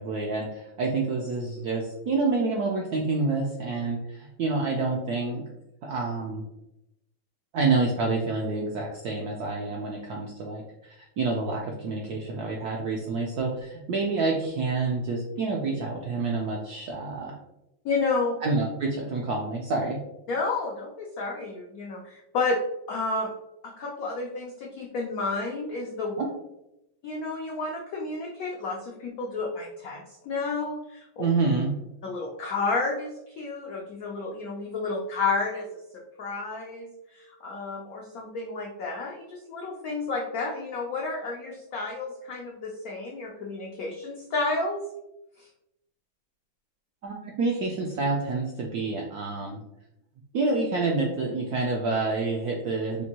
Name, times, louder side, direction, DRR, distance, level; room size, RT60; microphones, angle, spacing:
voice 1, 0.0-5.4 5.8-6.4 7.5-17.3 18.4-20.0 31.2-31.7 47.0-49.6 50.3-53.0, right 3 dB, 75° right, -1 dB, 0.8 m, -28 dB
voice 2, 17.8-18.4 20.3-22.6 22.9-23.3 23.6-26.2 27.0-31.2 32.0-35.7 36.2-44.8 45.4-45.5, left 3 dB, 85° left, -1 dB, 0.8 m, -31 dB
4.3 x 2.6 x 2.8 m, 0.87 s
omnidirectional pair, 2.2 m